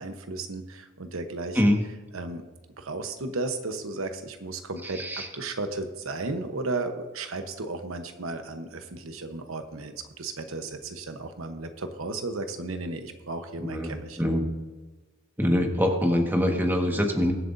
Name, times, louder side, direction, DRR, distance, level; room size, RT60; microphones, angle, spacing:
voice 1, 0.0-1.6 2.1-2.4 2.8-5.0 5.3-14.2, right 3 dB, 85° right, 7 dB, 1.0 m, -34 dB
voice 2, 4.8-5.3 13.6-14.4 15.4-17.3, equal, 10° right, 2 dB, 1.5 m, -24 dB
22.0 x 7.8 x 2.6 m, 1.2 s
head